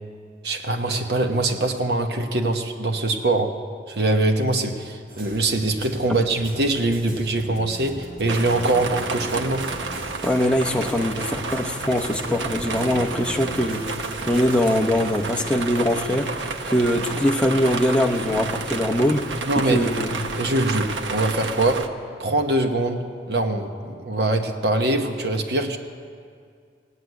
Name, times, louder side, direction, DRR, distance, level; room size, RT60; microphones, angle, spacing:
voice 1, 0.4-3.6 3.9-9.7 19.5-19.9 20.4-21.9 22.2-25.8, right 2 dB, 65° right, 5 dB, 1.1 m, -23 dB
sound 1, 5.1-18.9, right 1 dB, 50° right, 2.2 m, -41 dB
sound 2, 8.3-21.9, right 3 dB, 85° right, 0.9 m, -31 dB
voice 2, 10.2-20.2, equal, 5° left, 0 dB, 0.8 m, -22 dB
17.0 x 8.1 x 9.4 m, 2.2 s
head